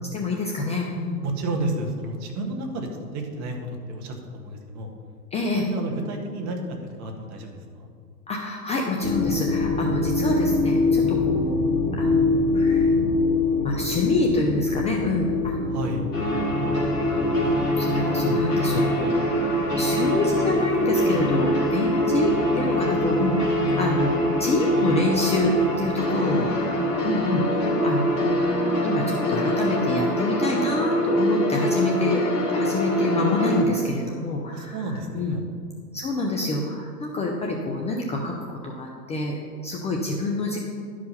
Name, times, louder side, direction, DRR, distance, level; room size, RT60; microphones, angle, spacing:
voice 1, 0.1-1.2 5.3-5.6 8.3-11.6 11.9-12.9 13.6-15.7 16.3-16.4 17.4-28.4 28.8-32.2 32.5-35.3 35.9-40.6, left 2 dB, 15° left, 0 dB, 0.5 m, -27 dB
voice 2, 1.2-4.9 5.5-6.6 7.0-7.9 15.7-16.0 26.1-26.9 34.5-35.4, right 2 dB, 35° right, 2 dB, 1.6 m, -32 dB
sound 1, 9.0-28.5, left 3 dB, 40° left, 1.6 m, -27 dB
sound 2, 16.1-33.6, equal, 70° left, 2.0 m, -24 dB
11.5 x 5.0 x 5.6 m, 2.2 s
hypercardioid pair, 110°, 48 cm